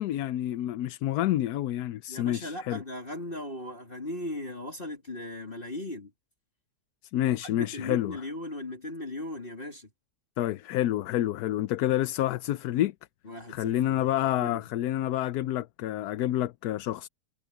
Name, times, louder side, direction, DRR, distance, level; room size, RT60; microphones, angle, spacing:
voice 1, 0.0-2.8 7.1-8.2 10.4-12.9 13.5-17.1, left 13 dB, 75° left, 1.1 m, -28 dB
voice 2, 2.1-6.1 7.4-9.9 13.2-14.1 14.4-14.6, left 1 dB, 35° left, 3.1 m, -38 dB
omnidirectional pair, 1.7 m